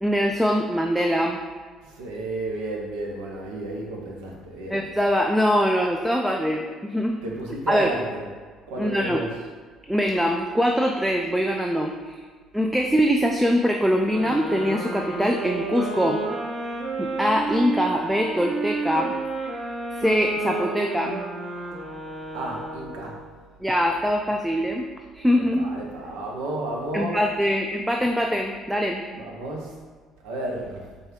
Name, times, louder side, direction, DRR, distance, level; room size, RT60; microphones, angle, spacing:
voice 1, 0.0-1.4 4.7-7.2 7.7-7.9 8.8-9.2 9.9-12.2 12.5-16.2 17.0-19.1 19.4-19.6 20.0-21.2 23.6-24.9 25.1-25.7 26.9-29.0, equal, 5° right, 2 dB, 0.3 m, -23 dB
voice 2, 1.8-4.8 7.2-8.3 8.7-9.3 22.3-23.2 25.4-27.2 29.1-29.8 30.2-30.8, right 1 dB, 65° right, -1 dB, 0.8 m, -32 dB
sound 1, 14.1-23.3, right 3 dB, 30° right, 1.5 m, -31 dB
4.7 x 2.3 x 4.6 m, 1.5 s
figure-of-eight pair, 50°, 0 cm